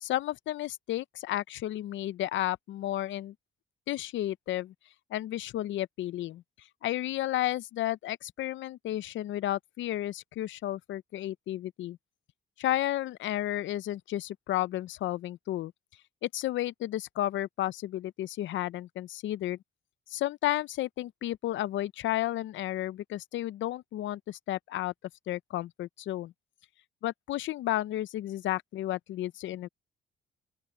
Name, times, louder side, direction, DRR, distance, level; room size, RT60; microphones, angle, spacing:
voice 1, 0.0-3.3 3.9-4.7 5.1-6.4 6.8-12.0 12.6-15.7 16.2-19.6 20.1-24.9 25.3-26.3 27.0-29.7, left 14 dB, 75° left, 0.6 m, -32 dB
open air
cardioid pair, 90°, 20 cm